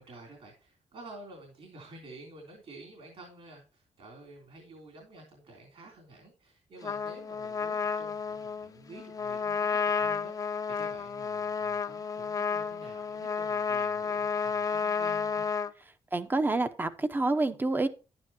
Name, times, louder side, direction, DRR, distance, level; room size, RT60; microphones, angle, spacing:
voice 1, 0.0-15.4, right 2 dB, 60° right, 1 dB, 3.5 m, -50 dB
Trumpet, 6.8-15.7, left 6 dB, 30° left, 0.7 m, -31 dB
voice 2, 16.1-17.9, right 2 dB, 15° right, 10 dB, 0.8 m, -28 dB
11.5 x 9.7 x 3.0 m, 0.33 s
wide cardioid pair, 155°, 11 cm